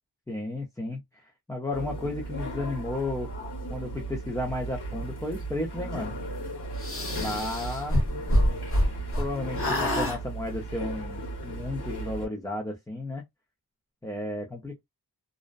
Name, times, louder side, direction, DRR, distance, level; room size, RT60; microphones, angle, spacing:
voice 1, 0.3-3.3 3.7-6.1 7.1-8.0 9.2-13.2 14.0-14.8, left 2 dB, 10° left, 0.5 m, -33 dB
sound 1, 1.7-12.3, right 2 dB, 75° left, 1.2 m, -36 dB
sound 2, 6.8-9.3 9.6-10.2, equal, 35° left, 0.9 m, -25 dB
2.6 x 2.0 x 2.3 m
wide cardioid pair, 90°, 40 cm